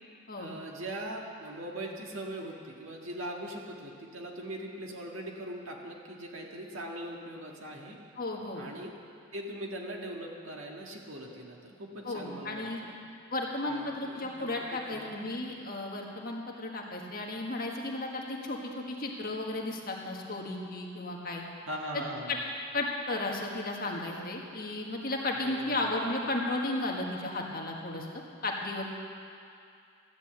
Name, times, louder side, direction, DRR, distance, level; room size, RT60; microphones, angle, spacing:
voice 1, 0.4-8.0 8.5-8.9 9.3-13.0 13.6-15.2 21.7-22.4 25.3-25.9, right 1 dB, 65° right, 0 dB, 1.7 m, -41 dB
voice 2, 8.2-8.6 12.1-12.8 13.3-21.4 21.9-22.0 22.3-22.4 22.7-28.1 28.4-28.8, left 2 dB, 40° left, -1 dB, 1.6 m, -34 dB
13.5 x 9.2 x 7.9 m, 2.4 s
head